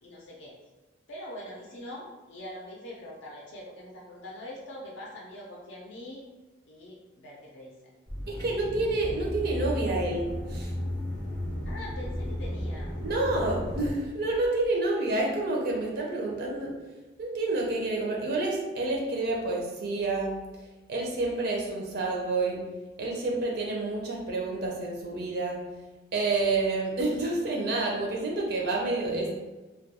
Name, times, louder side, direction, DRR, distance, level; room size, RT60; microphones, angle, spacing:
voice 1, 0.0-0.5 1.1-6.2 6.7-7.9 11.6-12.9, left 1 dB, 65° left, -3 dB, 0.5 m, -43 dB
sound 1, 8.1-13.9, equal, 10° left, 0.4 m, -34 dB
voice 2, 8.3-10.7 13.0-16.7 17.2-20.3 20.9-22.6 23.0-25.6 26.1-29.3, right 2 dB, 50° right, -2 dB, 0.4 m, -29 dB
2.2 x 2.2 x 2.7 m, 1.2 s
head